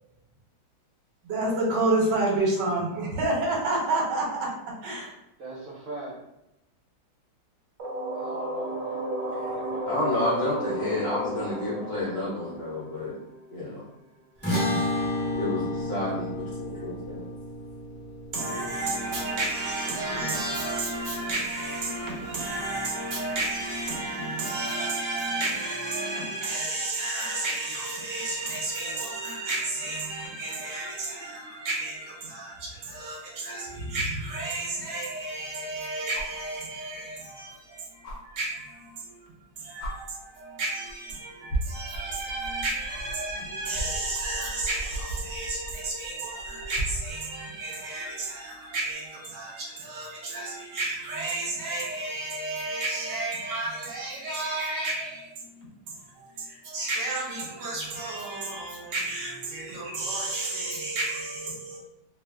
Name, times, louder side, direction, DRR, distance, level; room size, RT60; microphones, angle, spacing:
voice 1, 1.2-4.5 4.8-5.2 18.3-61.8, right 2 dB, 70° right, 1.3 m, -31 dB
voice 2, 5.4-6.2 8.1-10.2 10.7-12.0, right 2 dB, 55° right, 0.8 m, -43 dB
sound 1, 7.8-13.5, right 1 dB, 90° right, 0.6 m, -33 dB
voice 3, 9.8-13.2 13.5-13.8 15.3-17.2, left 2 dB, 65° left, 1.0 m, -30 dB
sound 2, 14.4-20.9, left 1 dB, 15° left, 0.4 m, -32 dB
sound 3, 36.1-36.4 38.0-38.2 39.3-39.4 39.8-39.9 40.9-41.1 41.5-47.2 48.8-48.9, right 1 dB, 90° left, 0.6 m, -35 dB
3.1 x 2.4 x 2.3 m
omnidirectional pair, 2.1 m